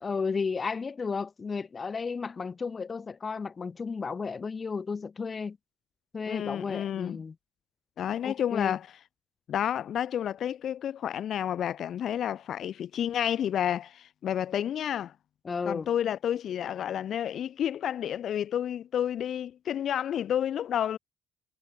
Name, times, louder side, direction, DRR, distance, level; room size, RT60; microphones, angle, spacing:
voice 1, 0.0-5.6 6.1-7.4 8.2-8.8 15.4-15.9, left 5 dB, 35° left, 2.3 m, -33 dB
voice 2, 6.3-7.2 8.0-8.9 9.5-15.1 15.7-21.0, left 10 dB, 60° left, 0.8 m, -30 dB
supercardioid pair, 70°, 0 cm